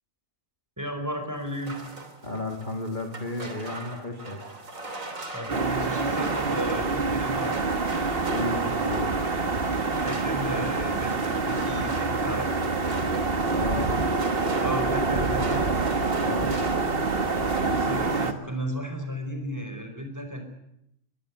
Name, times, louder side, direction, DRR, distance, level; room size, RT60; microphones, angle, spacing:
voice 1, 0.8-1.8 5.3-7.6 10.0-12.6 14.3-15.7 17.5-20.4, equal, 15° right, 5 dB, 5.1 m, -34 dB
sound 1, 1.5-9.2 9.7-17.0 17.3-17.8, right 2 dB, 80° right, 3.5 m, -40 dB
voice 2, 2.2-4.4 8.2-9.1 13.5-13.9 16.2-16.5, left 2 dB, 35° left, 3 dB, 2.7 m, -33 dB
sound 2, 5.5-18.3, right 3 dB, 45° right, 1.9 m, -26 dB
22.0 x 21.0 x 9.6 m, 0.78 s
omnidirectional pair, 1.4 m